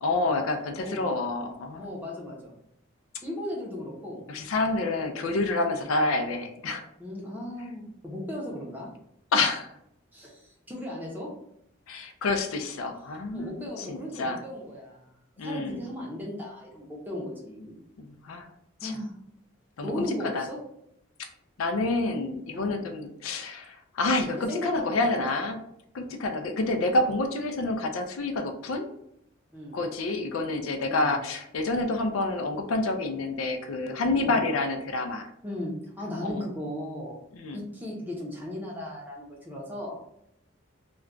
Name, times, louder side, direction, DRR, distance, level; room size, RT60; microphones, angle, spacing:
voice 1, 0.0-2.0 4.3-6.9 9.3-9.7 11.9-14.4 15.4-15.8 18.0-18.5 18.8-18.9 19.8-20.1 20.3-20.5 21.6-25.6 25.9-28.9 29.7-35.3 36.2-36.4 37.3-37.6, left 2 dB, 90° left, 6 dB, 0.4 m, -28 dB
voice 2, 0.8-1.1 1.8-2.5 3.2-4.2 5.7-5.9 7.0-8.9 10.1-11.3 13.3-15.1 15.4-17.8 18.8-19.1 19.8-20.6 22.5-22.8 24.5-25.4 26.0-26.2 29.5-29.8 30.9-31.2 34.2-34.5 35.4-37.2 37.5-40.0, left 1 dB, 10° right, -3 dB, 0.6 m, -36 dB
2.3 x 2.2 x 3.7 m, 0.76 s
head